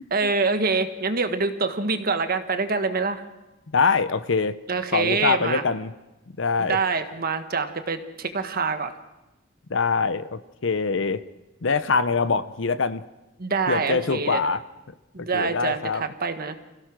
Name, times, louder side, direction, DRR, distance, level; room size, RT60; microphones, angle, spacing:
voice 1, 0.1-3.2 4.7-5.6 6.6-8.9 13.4-14.4 15.1-16.6, right 4 dB, 50° right, 9 dB, 1.4 m, -25 dB
voice 2, 3.7-4.6 4.9-5.9 6.4-6.8 9.7-11.2 11.6-13.0 13.7-14.6 15.3-16.0, left 4 dB, 65° left, 15 dB, 0.8 m, -23 dB
27.0 x 16.5 x 6.1 m, 1.0 s
head